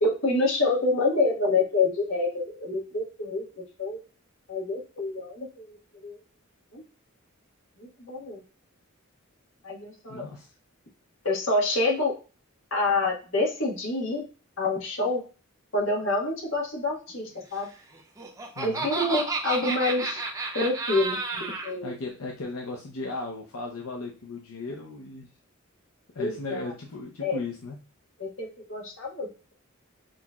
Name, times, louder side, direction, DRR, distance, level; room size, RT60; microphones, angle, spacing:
voice 1, 0.0-4.0 4.5-5.8 6.0-6.2 6.7-6.8 7.8-8.4 9.6-10.2 11.2-12.1 12.7-14.3 14.6-15.2 15.7-17.7 18.6-20.2 20.5-21.9 26.2-26.7 27.2-27.4 28.2-29.5, left 2 dB, 65° left, -2 dB, 1.5 m, -27 dB
voice 2, 10.1-10.5 18.6-18.9 21.8-25.3 26.1-27.8, left 3 dB, 85° left, 0 dB, 0.7 m, -36 dB
Laughter, 18.0-21.7, right 3 dB, 15° right, 0.7 m, -32 dB
6.2 x 3.0 x 2.3 m, 0.35 s
head